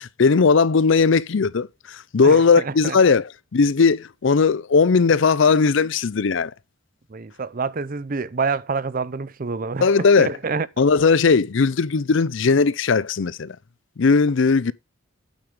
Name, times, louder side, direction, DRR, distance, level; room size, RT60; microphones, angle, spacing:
voice 1, 0.0-6.5 9.8-10.3 10.8-13.6 14.0-14.7, left 4 dB, 60° left, 0.5 m, -18 dB
voice 2, 2.2-3.0 7.1-10.7, right 4 dB, 40° right, 0.5 m, -27 dB
8.9 x 5.3 x 4.9 m
head